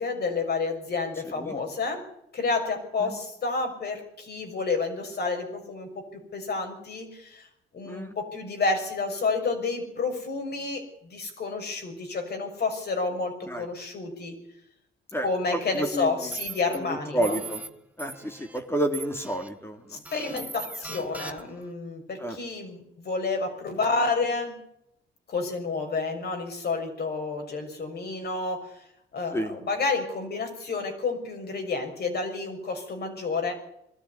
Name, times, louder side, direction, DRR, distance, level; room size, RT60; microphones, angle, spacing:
voice 1, 0.0-2.0 2.3-7.5 7.7-14.3 15.2-17.4 19.9-24.5 25.3-28.8 29.1-33.5, left 3 dB, 55° left, 4 dB, 6.2 m, -30 dB
voice 2, 15.1-16.3 16.7-17.6 18.0-20.0 22.2-22.4 29.3-29.5, right 1 dB, 10° left, 5 dB, 2.9 m, -30 dB
sound 1, 15.7-15.9 16.3-16.8 17.2-17.7 18.0-18.6 18.9-19.5 20.1-21.6, right 3 dB, 5° right, 1.9 m, -39 dB
21.5 x 13.5 x 9.6 m, 0.79 s
cardioid pair, 90°, 20 cm